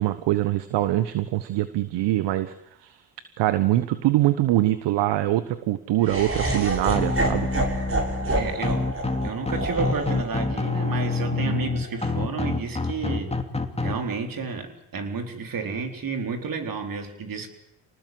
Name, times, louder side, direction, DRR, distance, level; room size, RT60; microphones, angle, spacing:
voice 1, 0.0-2.5 2.8-3.0 3.4-7.5 8.3-8.4 11.3-11.6, right 15 dB, 65° right, 13 dB, 1.2 m, -24 dB
Laughter, 6.0-12.2, right 2 dB, 30° right, 6.8 m, -29 dB
sound 1, 6.9-13.9, left 3 dB, 15° left, 2.8 m, -27 dB
voice 2, 8.4-8.9 9.2-13.3 13.8-17.5, right 4 dB, 50° right, 5 dB, 4.2 m, -31 dB
26.0 x 19.0 x 7.8 m, 0.80 s
hypercardioid pair, 60°, 45 cm